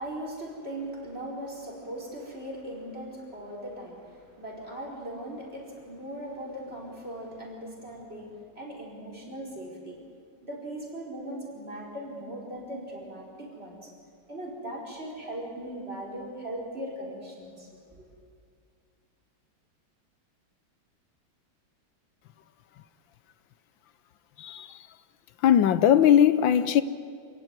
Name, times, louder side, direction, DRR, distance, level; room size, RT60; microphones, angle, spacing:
voice 1, 0.0-10.0 10.4-13.9 14.3-17.7 18.0-18.1, right 1 dB, 30° right, 5.1 m, -39 dB
voice 2, 24.4-24.9 25.4-26.8, left 10 dB, 80° left, 1.5 m, -20 dB
27.0 x 16.0 x 9.7 m
omnidirectional pair, 2.1 m